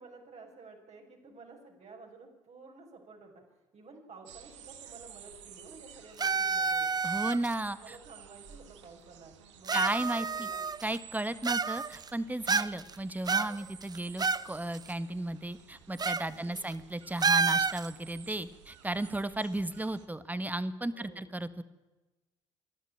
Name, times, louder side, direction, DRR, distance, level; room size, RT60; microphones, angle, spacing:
voice 1, 0.0-3.4 3.7-6.9 7.7-10.7 16.2-16.7 20.9-21.3, right 3 dB, 45° right, 2 dB, 6.9 m, -52 dB
sound 1, 4.3-20.1, right 9 dB, 85° right, 1.7 m, -54 dB
sound 2, 6.2-7.5 8.5-8.6 9.7-11.0 11.4-12.1 12.5-12.9 13.3-14.5 14.7-14.8 16.0-16.3 16.6-16.7 17.2-17.9, right 5 dB, 25° right, 0.8 m, -29 dB
voice 2, 7.0-8.0 9.7-10.5 10.8-21.6, right 1 dB, 10° right, 14 dB, 1.7 m, -34 dB
27.0 x 12.0 x 8.9 m, 1.1 s
hypercardioid pair, 55°, 15 cm